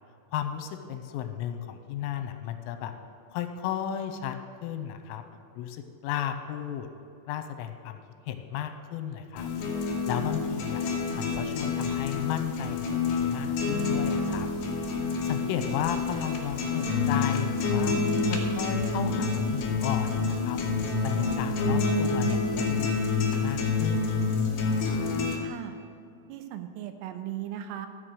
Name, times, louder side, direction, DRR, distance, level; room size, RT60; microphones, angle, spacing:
voice 1, 0.3-2.9 3.3-4.4 4.6-5.2 5.6-6.9 7.3-9.5 10.1-10.9 11.2-14.5 15.2-18.0 18.3-20.6 21.0-24.1, left 10 dB, 85° left, 8 dB, 3.4 m, -34 dB
sound 1, 9.4-25.4, left 4 dB, 65° left, 3.6 m, -28 dB
voice 2, 25.4-25.8 26.3-27.9, right 11 dB, 85° right, 8 dB, 3.3 m, -37 dB
14.0 x 6.5 x 7.7 m, 2.5 s
omnidirectional pair, 5.8 m